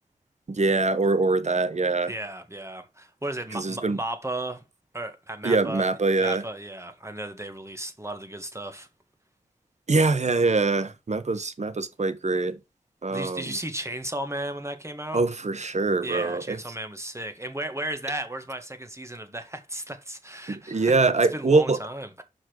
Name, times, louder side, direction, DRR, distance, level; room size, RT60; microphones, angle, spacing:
voice 1, 0.5-2.1 3.5-4.0 5.4-6.4 9.9-12.6 13.0-13.6 15.1-16.6 20.5-21.8, right 3 dB, 55° right, 1.2 m, -23 dB
voice 2, 2.1-4.6 4.9-5.9 6.2-8.9 13.1-15.2 16.0-20.9 21.3-22.2, right 1 dB, 20° right, 1.8 m, -35 dB
5.6 x 5.2 x 6.4 m
cardioid pair, 50°, 14 cm